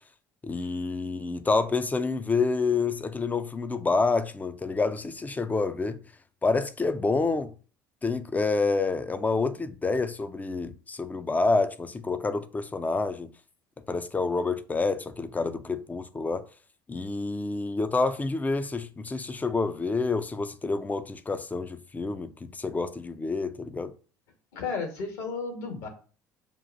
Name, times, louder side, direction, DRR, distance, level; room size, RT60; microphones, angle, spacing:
voice 1, 0.4-6.0 6.4-7.5 8.0-13.3 13.9-16.4 16.9-23.9, left 3 dB, 15° left, 0.5 m, -28 dB
voice 2, 24.5-25.9, left 4 dB, 65° left, 1.4 m, -33 dB
7.1 x 2.4 x 2.5 m
hypercardioid pair, 65°, 10 cm